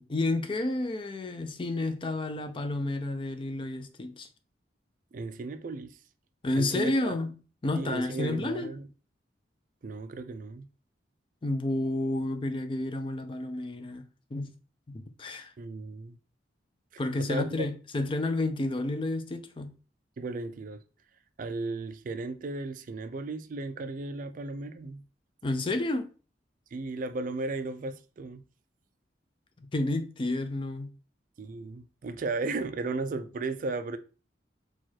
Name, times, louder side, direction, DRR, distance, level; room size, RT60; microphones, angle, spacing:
voice 1, 0.0-4.3 6.4-7.3 7.6-8.7 11.4-14.5 14.9-15.5 17.0-19.7 25.4-26.1 29.6-30.9, left 2 dB, 30° left, 0.5 m, -30 dB
voice 2, 5.1-6.0 6.6-7.2 7.7-8.9 9.8-10.7 15.6-16.2 17.3-17.7 20.2-20.8 21.4-25.0 26.7-28.4 31.4-34.0, right 3 dB, 45° right, 0.4 m, -35 dB
4.5 x 2.3 x 4.4 m
head